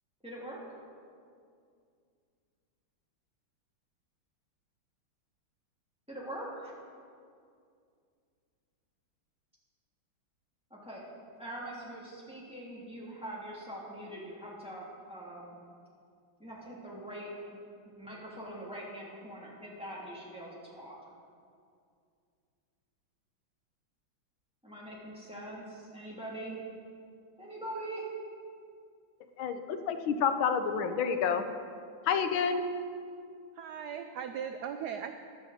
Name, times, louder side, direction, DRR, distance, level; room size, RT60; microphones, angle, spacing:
voice 1, 0.2-0.6 6.1-6.7 10.7-11.0 11.4-15.6 16.4-17.4 17.8-21.0 24.6-26.6 27.4-28.0, right 1 dB, 5° right, -6 dB, 2.8 m, -43 dB
voice 2, 29.4-31.4 32.1-32.7, left 6 dB, 80° left, 8 dB, 1.6 m, -29 dB
voice 3, 33.6-35.1, right 8 dB, 75° right, 7 dB, 0.9 m, -38 dB
15.5 x 11.5 x 4.2 m, 2.3 s
omnidirectional pair, 2.2 m